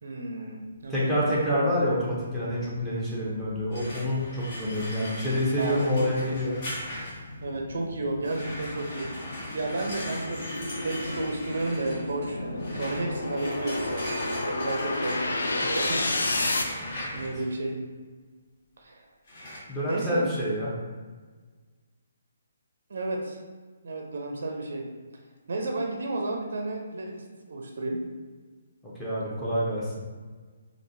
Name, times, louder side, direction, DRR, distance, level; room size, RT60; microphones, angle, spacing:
voice 1, 0.0-1.2 5.6-6.1 7.4-16.2 17.1-17.8 18.8-19.1 19.9-20.2 22.9-23.4 23.8-24.9 25.5-28.0, right 2 dB, 55° right, 2 dB, 0.5 m, -32 dB
voice 2, 0.9-6.6 17.1-17.2 19.7-20.7 29.0-29.9, equal, 5° left, -8 dB, 0.8 m, -27 dB
sound 1, 2.6-16.6, left 2 dB, 70° left, 0.4 m, -33 dB
sound 2, 3.7-7.4 8.2-17.5 19.3-19.6, left 1 dB, 40° left, 1.0 m, -39 dB
3.6 x 2.4 x 2.6 m, 1.4 s
figure-of-eight pair, 135°, 0 cm